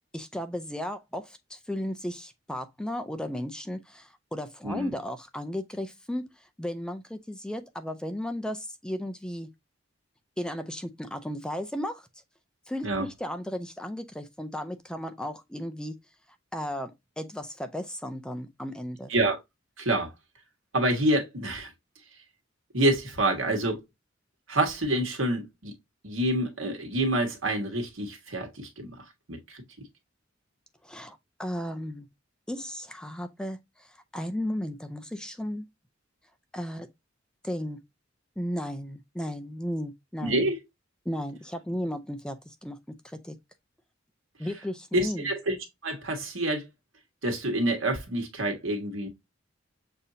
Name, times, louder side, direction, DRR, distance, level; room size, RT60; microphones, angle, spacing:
voice 1, 0.1-6.2 6.6-9.5 10.4-12.1 12.7-15.9 16.5-19.1 30.8-32.1 32.5-35.7 36.5-36.9 37.4-37.8 38.4-40.5 41.1-42.8 43.0-43.4 44.4-45.3, equal, 5° left, 0.4 m, -35 dB
voice 2, 19.8-20.1 20.7-21.7 22.7-23.8 24.5-25.7 26.0-28.9 29.3-29.6 40.2-40.6 44.9-45.6 45.8-46.6 47.2-49.1, right 1 dB, 85° right, 1.5 m, -27 dB
6.7 x 2.7 x 2.6 m
head